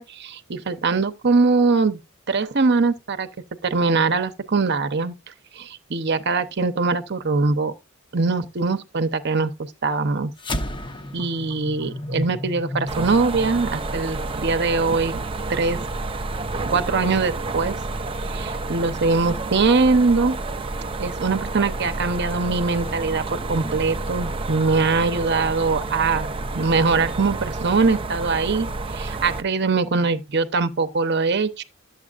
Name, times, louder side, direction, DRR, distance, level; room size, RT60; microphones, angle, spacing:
voice 1, 0.0-2.0 2.3-3.3 3.6-5.1 5.6-7.7 8.1-9.5 9.8-10.3 11.1-15.2 15.5-15.8 16.7-17.8 18.3-20.4 21.0-26.3 26.5-28.7 28.9-31.6, right 4 dB, 55° right, 0.8 m, -22 dB
sound 1, 10.4-15.0, left 1 dB, 25° left, 0.7 m, -33 dB
sound 2, 12.9-29.4, right 3 dB, 25° right, 0.5 m, -30 dB
12.0 x 8.0 x 2.4 m
head